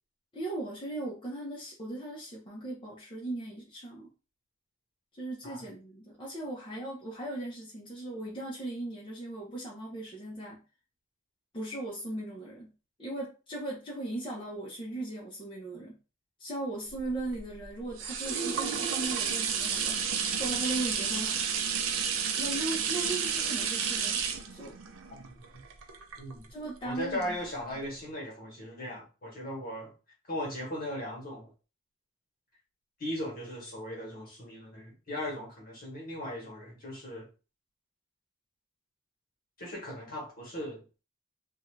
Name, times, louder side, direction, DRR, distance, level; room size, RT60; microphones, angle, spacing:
voice 1, 0.3-4.1 5.2-10.6 11.5-12.7 13.0-16.0 16.4-20.0 20.4-21.4 22.4-24.2 24.5-24.7 26.5-27.4, right 2 dB, 25° left, 0.7 m, -38 dB
sound 1, 16.9-26.7 27.2-27.3, right 7 dB, 75° right, 0.5 m, -31 dB
voice 2, 25.1-25.6 26.2-26.5 26.8-29.9 30.3-31.5 33.0-37.3 39.6-40.8, left 1 dB, 45° left, 1.3 m, -38 dB
2.7 x 2.3 x 3.1 m
head